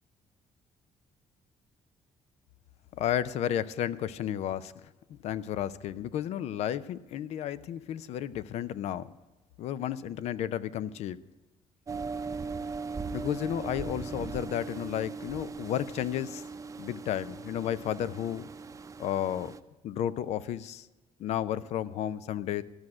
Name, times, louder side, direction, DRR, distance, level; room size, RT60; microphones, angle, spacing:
voice 1, 2.9-4.7 5.1-9.1 9.6-11.2 13.1-16.4 16.8-18.5 19.0-19.5 19.8-20.9 21.2-22.6, left 11 dB, 75° left, 17 dB, 0.5 m, -32 dB
sound 1, 11.9-19.6, right 4 dB, 30° right, 0.6 m, -39 dB
13.0 x 6.3 x 9.7 m, 1.1 s
cardioid pair, 95°, 11 cm